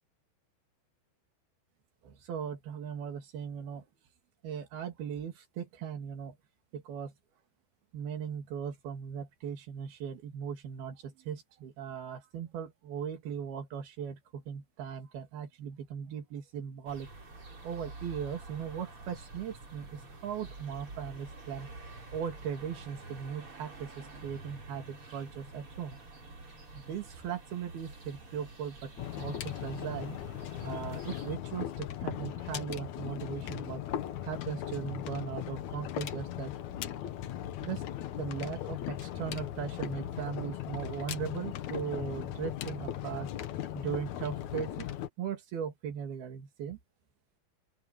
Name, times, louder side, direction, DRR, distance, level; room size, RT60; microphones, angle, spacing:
voice 1, 2.0-3.9 4.4-6.4 6.7-7.1 7.9-17.1 17.6-21.7 22.1-26.0 26.8-30.2 30.6-33.8 34.2-36.5 37.6-37.8 38.2-43.3 43.7-44.9 45.2-46.8, right 8 dB, 80° right, 4.4 m, -38 dB
sound 1, 16.9-31.4, right 2 dB, 35° right, 5.7 m, -48 dB
sound 2, 29.0-45.1, left 11 dB, 65° left, 2.1 m, -38 dB
open air
omnidirectional pair, 4.3 m